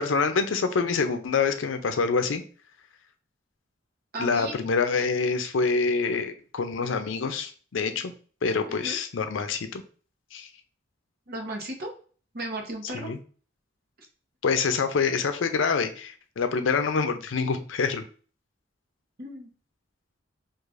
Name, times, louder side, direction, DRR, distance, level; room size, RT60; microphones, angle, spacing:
voice 1, 0.0-2.4 4.2-8.1 8.4-9.8 10.3-10.5 12.9-13.2 14.4-18.0, left 5 dB, 80° left, 8 dB, 0.5 m, -26 dB
voice 2, 4.1-4.5 8.7-9.0 11.3-11.9 12.3-13.1 19.2-19.5, right 1 dB, 55° right, 2 dB, 0.9 m, -35 dB
4.7 x 2.5 x 2.4 m, 0.40 s
head